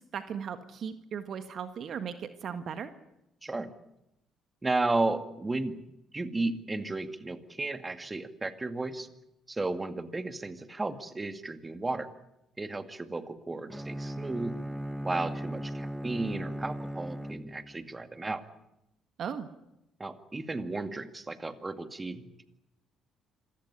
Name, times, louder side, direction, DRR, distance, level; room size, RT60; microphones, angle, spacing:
voice 1, 0.0-2.9 19.2-19.5, right 7 dB, 55° right, 10 dB, 1.6 m, -37 dB
voice 2, 4.6-5.8 6.1-9.1 9.5-12.1 12.6-14.5 15.0-18.4 20.0-22.4, right 2 dB, 25° right, 9 dB, 2.2 m, -33 dB
Bowed string instrument, 13.7-17.9, equal, 5° right, 1.2 m, -37 dB
26.5 x 16.0 x 9.9 m, 0.89 s
hypercardioid pair, 50°, 0 cm